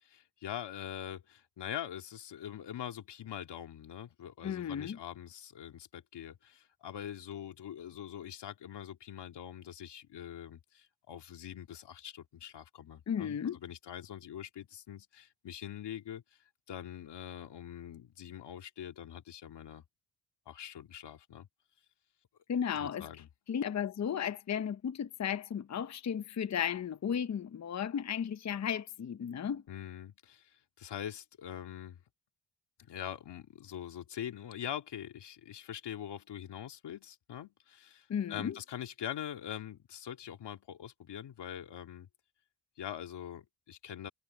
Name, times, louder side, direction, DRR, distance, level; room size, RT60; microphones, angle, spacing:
voice 1, 0.0-16.2 16.7-19.8 20.5-21.5 22.8-23.3 29.7-32.0 32.8-42.1 42.8-44.1, left 10 dB, 90° left, 2.4 m, -43 dB
voice 2, 4.4-5.0 13.1-13.6 22.5-23.1 23.5-29.6 38.1-38.6, left 8 dB, 45° left, 0.7 m, -34 dB
cardioid pair, 95°, 40 cm